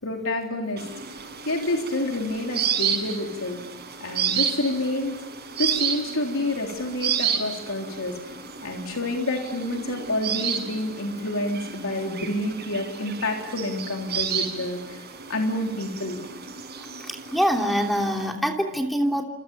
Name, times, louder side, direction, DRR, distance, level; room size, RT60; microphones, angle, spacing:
voice 1, 0.0-0.9 1.5-3.6 4.0-5.1 5.6-8.2 8.6-16.2, left 1 dB, 85° left, 1 dB, 3.7 m, -28 dB
sound 1, 0.8-18.3, right 7 dB, 50° right, 6.8 m, -31 dB
voice 2, 17.0-19.2, equal, ahead, 2 dB, 2.9 m, -24 dB
29.0 x 27.5 x 7.2 m, 0.99 s
head